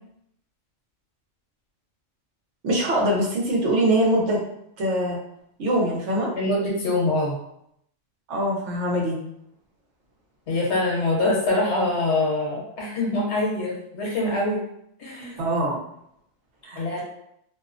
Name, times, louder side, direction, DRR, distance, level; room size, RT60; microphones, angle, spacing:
voice 1, 2.6-4.4 4.8-5.2 5.6-6.3 8.3-9.2 15.4-15.8 16.6-17.0, right 1 dB, 70° right, -2 dB, 1.0 m, -23 dB
voice 2, 6.3-7.4 10.5-14.6 15.0-15.4 16.8-17.0, left 2 dB, 65° left, -4 dB, 1.1 m, -24 dB
2.7 x 2.0 x 2.4 m, 0.74 s
omnidirectional pair, 1.3 m